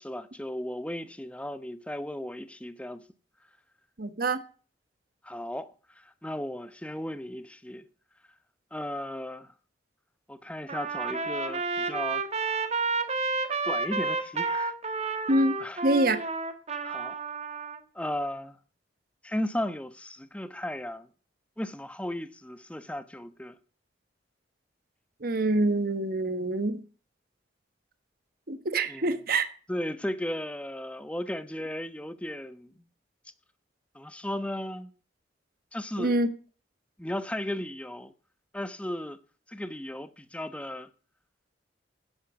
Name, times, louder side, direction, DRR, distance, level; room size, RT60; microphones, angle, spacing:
voice 1, 0.0-3.0 5.2-7.9 8.7-9.5 10.3-12.2 13.6-15.2 15.6-15.8 16.8-17.2 17.9-18.6 19.2-21.1 21.6-23.5 28.9-29.1 29.7-32.7 33.9-34.9 35.7-36.2 37.0-38.1 38.5-39.2 39.5-40.9, left 1 dB, 5° left, 0.8 m, -35 dB
voice 2, 4.0-4.4 15.3-15.5 15.8-16.2 25.2-26.8 28.5-29.5 36.0-36.3, right 2 dB, 55° right, 1.3 m, -25 dB
Trumpet, 10.7-17.8, right 4 dB, 35° right, 1.4 m, -31 dB
10.5 x 10.0 x 5.9 m
head